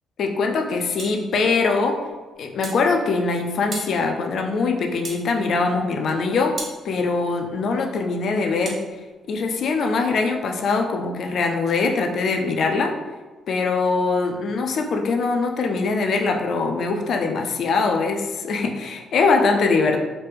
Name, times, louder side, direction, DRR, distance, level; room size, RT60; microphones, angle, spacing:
voice 1, 0.2-2.0 2.4-6.6 6.8-8.8 9.3-12.9 13.5-20.0, left 4 dB, 65° left, 4 dB, 0.4 m, -22 dB
sound 1, 1.0-1.2 2.6-2.8 3.7-3.9 5.0-5.3 6.6-6.8 8.6-8.8, right 3 dB, 50° right, 0.6 m, -34 dB
3.1 x 2.1 x 3.3 m, 1.3 s
cardioid pair, 90°, 0 cm